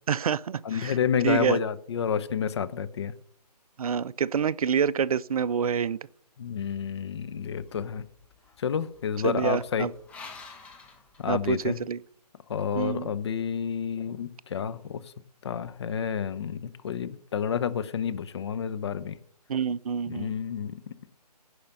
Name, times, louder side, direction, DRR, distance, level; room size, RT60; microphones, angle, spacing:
voice 1, 0.1-1.0 1.2-1.6 3.8-6.0 9.2-9.9 11.3-12.0 12.7-13.1 19.5-20.3, right 7 dB, 60° right, 0.4 m, -27 dB
voice 2, 0.6-3.1 6.4-8.0 8.6-9.9 11.2-11.8 12.5-15.0 15.4-19.2 20.1-20.8, left 7 dB, 40° left, 0.7 m, -30 dB
sound 1, 7.5-11.9, left 4 dB, 5° left, 0.6 m, -50 dB
10.5 x 5.0 x 6.7 m
figure-of-eight pair, 150°, 21 cm